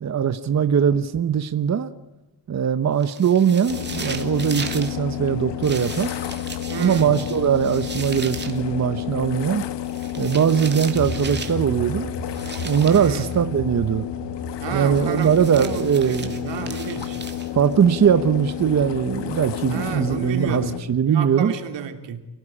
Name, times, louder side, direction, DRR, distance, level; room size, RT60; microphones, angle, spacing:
voice 1, 0.0-1.9 2.5-6.1 6.8-9.6 10.2-12.1 12.6-14.1 14.7-16.7 17.5-21.5, right 8 dB, 40° right, 1.0 m, -21 dB
sound 1, 3.0-4.9 5.6-8.6 9.9-11.7 12.3-13.4 14.9-17.7, right 4 dB, 25° right, 2.7 m, -37 dB
sound 2, 3.7-20.8, left 12 dB, 75° left, 1.5 m, -31 dB
voice 2, 6.7-7.1 12.8-13.2 14.6-17.2 19.7-20.8 21.1-22.2, right 8 dB, 80° right, 3.1 m, -31 dB
sound 3, 10.9-17.8, left 1 dB, 35° left, 1.7 m, -36 dB
29.0 x 18.0 x 10.0 m
wide cardioid pair, 145°, 43 cm